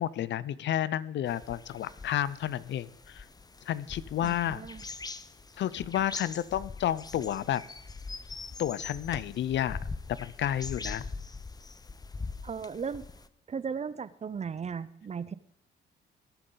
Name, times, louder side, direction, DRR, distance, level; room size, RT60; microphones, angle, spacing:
voice 1, 0.0-3.2 3.7-4.6 5.6-7.6 8.6-9.8 10.2-11.1, left 11 dB, 65° left, 18 dB, 0.6 m, -31 dB
sound 1, 1.3-13.3, left 4 dB, 20° left, 0.7 m, -42 dB
voice 2, 4.2-4.8 12.4-13.1 13.5-15.3, right 6 dB, 35° right, 16 dB, 0.6 m, -36 dB
20.0 x 8.9 x 3.9 m, 0.77 s
cardioid pair, 90°, 20 cm